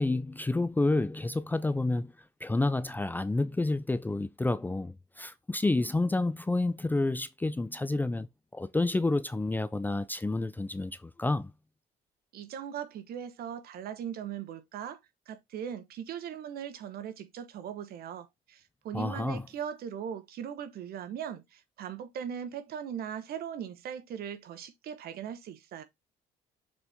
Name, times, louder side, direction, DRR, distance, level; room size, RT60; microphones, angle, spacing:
voice 1, 0.0-2.1 2.4-8.3 8.5-11.5 18.9-19.4, left 2 dB, 10° left, 0.4 m, -29 dB
voice 2, 12.3-15.0 15.3-25.8, right 8 dB, 65° right, 1.2 m, -39 dB
6.9 x 4.2 x 3.5 m
cardioid pair, 110°, 17 cm